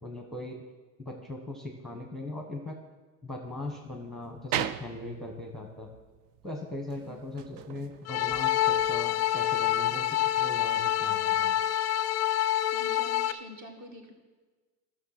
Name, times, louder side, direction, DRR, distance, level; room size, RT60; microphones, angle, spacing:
voice 1, 0.0-0.6 1.0-2.8 3.2-5.9 6.4-11.6, left 2 dB, ahead, 1 dB, 1.2 m, -40 dB
sound 1, 3.4-9.3, right 10 dB, 65° right, 0.7 m, -40 dB
sound 2, 8.1-13.3, left 12 dB, 35° left, 0.6 m, -27 dB
voice 2, 12.7-14.1, equal, 35° right, 3 dB, 2.1 m, -47 dB
12.5 x 6.5 x 5.8 m, 1.3 s
supercardioid pair, 105°, 46 cm